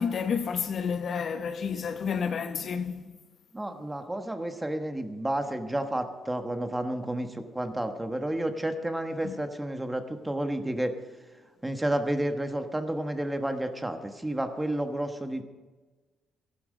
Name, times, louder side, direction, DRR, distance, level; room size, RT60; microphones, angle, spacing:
voice 1, 0.0-3.2 9.2-9.3, left 6 dB, 55° left, 1.0 m, -30 dB
voice 2, 3.5-10.9 11.6-15.4, right 1 dB, 10° right, 1.4 m, -31 dB
14.5 x 12.0 x 5.1 m
cardioid pair, 90°, 0 cm